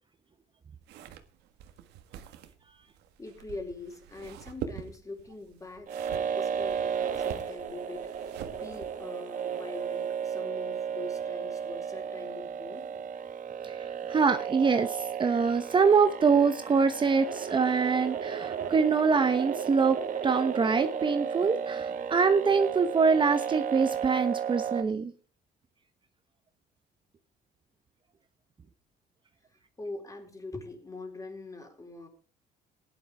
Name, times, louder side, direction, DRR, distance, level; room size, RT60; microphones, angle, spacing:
sound 1, 0.8-9.1, right 9 dB, 90° right, 1.7 m, -45 dB
voice 1, 3.2-13.1 29.8-32.1, left 3 dB, 20° left, 3 dB, 4.2 m, -43 dB
sound 2, 5.9-24.8, right 7 dB, 50° right, 1.7 m, -34 dB
voice 2, 13.6-20.0 20.2-25.1, right 5 dB, 30° right, 9 dB, 1.0 m, -24 dB
16.0 x 10.5 x 3.5 m, 0.40 s
cardioid pair, 110°, 17 cm